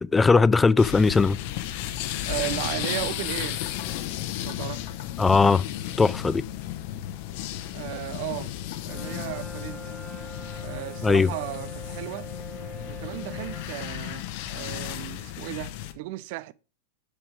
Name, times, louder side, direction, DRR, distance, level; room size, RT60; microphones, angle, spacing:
voice 1, 0.1-1.4 5.2-5.6 6.0-6.4 11.0-11.3, left 4 dB, 10° left, 0.3 m, -19 dB
sound 1, 0.8-15.9, left 12 dB, 50° left, 1.0 m, -34 dB
voice 2, 2.2-3.6 4.4-4.9 7.7-8.5 8.9-10.0 10.6-12.3 12.9-16.5, right 17 dB, 45° right, 0.5 m, -35 dB
Brass instrument, 8.9-13.8, right 2 dB, 10° right, 2.4 m, -43 dB
sound 2, 10.3-11.5, right 4 dB, 65° right, 1.8 m, -52 dB
6.8 x 6.0 x 4.9 m
figure-of-eight pair, 90°, 0 cm